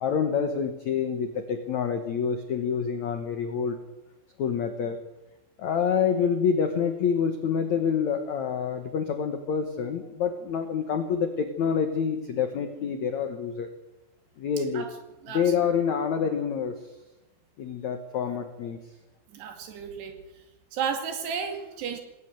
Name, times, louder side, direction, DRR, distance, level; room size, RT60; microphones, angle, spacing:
voice 1, 0.0-3.8 4.4-5.0 5.6-13.7 14.4-14.9 15.3-16.8 17.6-18.8, left 7 dB, 75° left, 7 dB, 1.7 m, -27 dB
voice 2, 19.3-20.1 20.7-22.0, right 7 dB, 65° right, 6 dB, 4.3 m, -33 dB
19.0 x 18.0 x 7.7 m, 1.0 s
omnidirectional pair, 5.3 m